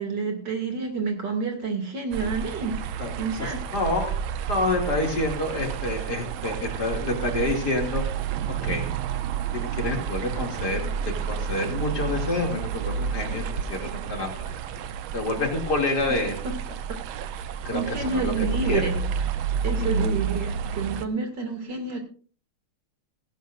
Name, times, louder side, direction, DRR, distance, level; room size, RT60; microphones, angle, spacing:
voice 1, 0.0-2.8 3.2-3.6 16.4-16.5 17.7-19.0 19.6-22.0, right 4 dB, 55° right, 3 dB, 3.1 m, -29 dB
river kocher bridge, 2.1-21.0, right 7 dB, 75° right, 1.6 m, -30 dB
voice 2, 3.4-4.1 4.5-8.0 8.5-8.9 9.5-10.9 11.2-14.3 15.1-16.4 17.6-18.3 18.6-18.8 19.8-20.0, left 2 dB, 50° left, 2 dB, 3.1 m, -28 dB
17.0 x 16.5 x 2.5 m, 0.40 s
omnidirectional pair, 2.3 m